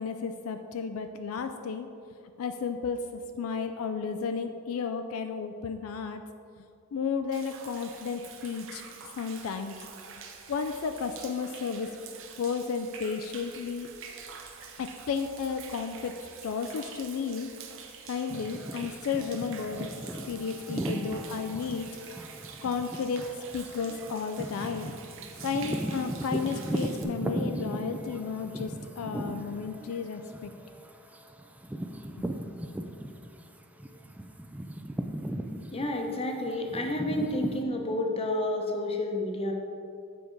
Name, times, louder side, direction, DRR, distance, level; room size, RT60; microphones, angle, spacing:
voice 1, 0.0-1.9 2.4-3.0 3.4-6.2 6.6-6.7 6.9-8.8 9.1-9.8 10.5-11.9 12.4-13.9 14.8-16.1 16.4-17.5 18.1-21.9 22.6-23.3 23.5-24.9 25.4-30.5 32.1-32.2, left 5 dB, 70° left, 7 dB, 0.4 m, -33 dB
Human voice / Rain / Stream, 7.3-27.0, right 6 dB, 65° right, 0.7 m, -47 dB
sound 1, 18.3-33.4 33.8-37.6, right 1 dB, 5° right, 0.3 m, -37 dB
voice 2, 35.7-39.5, left 1 dB, 25° left, 2 dB, 0.8 m, -30 dB
7.7 x 5.0 x 4.5 m, 2.4 s
head